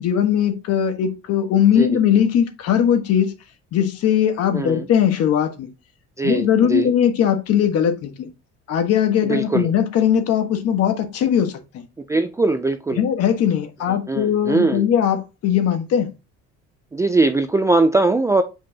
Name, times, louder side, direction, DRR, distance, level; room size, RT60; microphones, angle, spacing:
voice 1, 0.0-3.3 3.7-5.7 6.2-8.3 8.7-11.8 12.9-16.1, left 9 dB, 55° left, 1.3 m, -19 dB
voice 2, 4.5-4.9 6.2-6.9 9.3-9.7 12.1-13.0 14.1-14.8 16.9-18.4, right 3 dB, 10° right, 0.3 m, -20 dB
7.1 x 5.2 x 2.8 m
cardioid pair, 165°, 29 cm